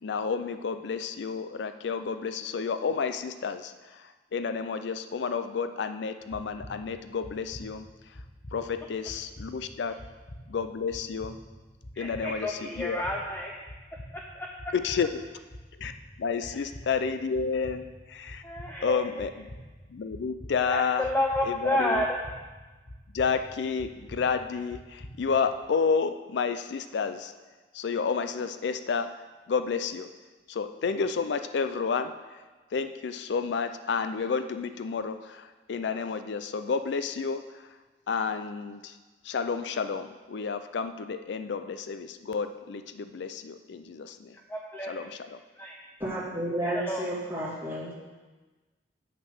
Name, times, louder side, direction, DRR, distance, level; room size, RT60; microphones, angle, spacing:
voice 1, 0.0-8.2 8.5-9.9 10.5-11.4 12.0-13.0 14.7-15.2 15.8-15.9 16.2-18.4 18.8-19.5 19.9-21.1 21.4-22.0 23.1-27.3 27.7-29.2 29.5-30.1 30.5-32.4 32.7-37.7 38.1-39.0 39.2-44.4 44.9-45.4, left 5 dB, 70° left, 10 dB, 0.4 m, -31 dB
sound 1, 6.2-25.7, equal, 45° left, 1.2 m, -47 dB
voice 2, 11.9-13.5 14.4-14.5 18.4-19.2 20.7-22.2 44.5-45.0 45.6-45.8 46.7-47.1, left 1 dB, 10° left, -1 dB, 0.6 m, -30 dB
voice 3, 46.0-47.9, right 1 dB, 15° right, -8 dB, 2.8 m, -31 dB
8.0 x 6.3 x 6.4 m, 1.3 s
head